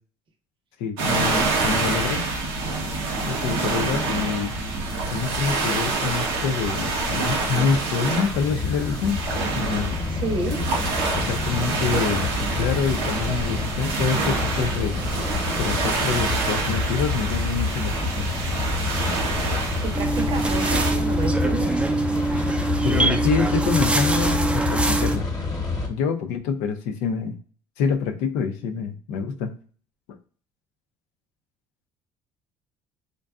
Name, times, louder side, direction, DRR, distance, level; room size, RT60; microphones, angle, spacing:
voice 1, 0.8-2.2 3.2-4.5 5.1-9.2 9.5-10.0 11.1-14.9 15.6-18.3 22.8-25.3 25.9-27.4 27.8-29.5, left 6 dB, 80° left, 6 dB, 0.5 m, -26 dB
sound 1, 1.0-20.9, right 3 dB, 90° right, 0.7 m, -27 dB
sound 2, 8.3-25.9, left 3 dB, 30° left, 1.0 m, -28 dB
voice 2, 10.1-10.8 19.8-21.8, right 2 dB, 45° right, 4 dB, 0.7 m, -30 dB
sound 3, 19.9-25.2, right 2 dB, 10° right, 0.4 m, -24 dB
2.6 x 2.1 x 2.3 m, 0.42 s
supercardioid pair, 75°, 12 cm